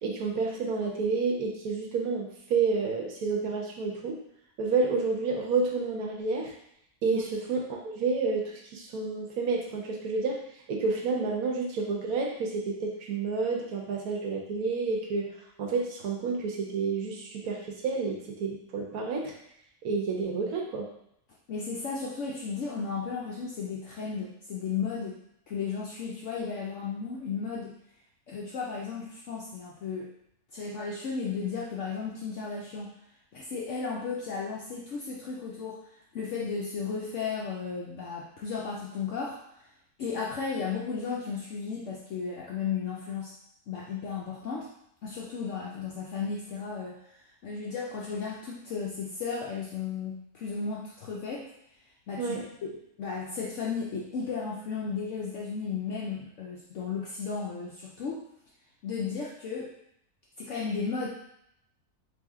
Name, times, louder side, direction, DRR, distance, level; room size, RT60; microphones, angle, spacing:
voice 1, 0.0-4.2 4.6-6.5 7.0-10.4 10.7-15.3 15.6-19.3 19.8-20.9 52.2-52.4, right 4 dB, 70° right, 0 dB, 1.0 m, -30 dB
voice 2, 21.5-25.2 25.5-27.7 28.3-30.1 30.5-32.9 33.3-35.8 36.1-39.4 40.0-43.3 43.7-44.7 45.0-51.5 52.1-58.2 58.8-59.7 60.4-61.1, left 5 dB, 65° left, -3 dB, 0.7 m, -34 dB
3.4 x 2.6 x 3.5 m, 0.74 s
omnidirectional pair, 1.7 m